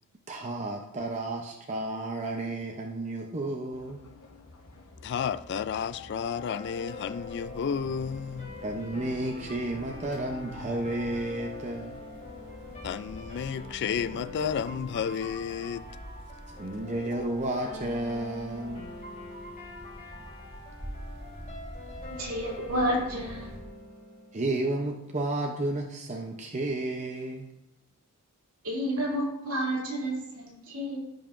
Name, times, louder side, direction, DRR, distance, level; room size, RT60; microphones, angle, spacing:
voice 1, 0.3-4.0 8.6-12.0 16.5-18.9 24.3-27.5, right 2 dB, 35° right, 0.7 m, -32 dB
sound 1, 3.7-15.7, left 2 dB, 70° left, 1.1 m, -53 dB
voice 2, 5.0-8.6 12.8-15.8, left 7 dB, 50° left, 0.3 m, -32 dB
sound 2, 5.7-23.6, equal, 50° right, 1.8 m, -47 dB
sound 3, 5.9-24.9, left 2 dB, 35° left, 3.3 m, -44 dB
voice 3, 22.1-23.5 28.6-31.0, equal, 70° right, 2.8 m, -30 dB
15.5 x 5.5 x 2.6 m
head